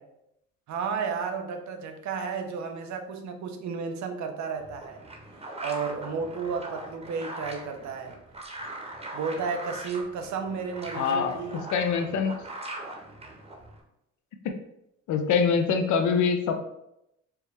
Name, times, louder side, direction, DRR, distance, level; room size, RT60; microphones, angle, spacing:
voice 1, 0.7-5.0 5.6-8.2 9.1-11.7, right 5 dB, 70° right, 6 dB, 0.6 m, -32 dB
sound 1, 4.6-13.8, right 2 dB, 20° right, 0.8 m, -41 dB
voice 2, 10.9-11.4 11.7-12.3 15.1-16.5, left 6 dB, 75° left, 5 dB, 0.6 m, -24 dB
4.5 x 2.1 x 3.3 m, 0.81 s
cardioid pair, 90°, 30 cm